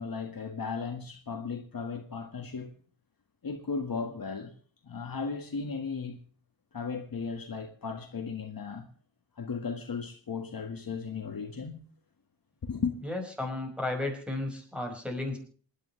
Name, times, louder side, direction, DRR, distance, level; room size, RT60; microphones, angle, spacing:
voice 1, 0.0-2.7 3.4-4.5 4.8-6.3 6.7-8.9 9.4-11.8 12.6-13.0, left 5 dB, 50° left, 1.8 m, -36 dB
voice 2, 13.0-15.4, left 2 dB, ahead, 5.6 m, -33 dB
27.0 x 11.0 x 3.3 m
wide cardioid pair, 135°, 43 cm